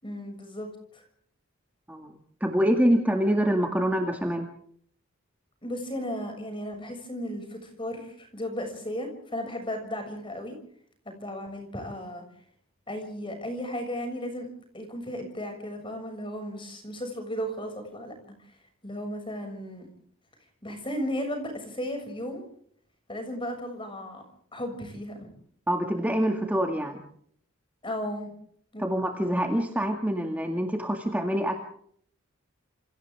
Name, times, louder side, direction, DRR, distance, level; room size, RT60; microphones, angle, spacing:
voice 1, 0.0-1.0 5.6-10.5 11.0-12.2 12.9-14.5 14.7-18.1 18.4-18.6 18.8-19.9 20.6-22.4 23.1-24.2 24.5-25.3 27.8-28.3 28.7-28.9, equal, 25° left, 5 dB, 6.7 m, -35 dB
voice 2, 1.9-4.5 25.7-27.0 28.8-31.6, equal, 5° right, 2 dB, 2.1 m, -25 dB
28.5 x 28.0 x 3.6 m, 0.62 s
head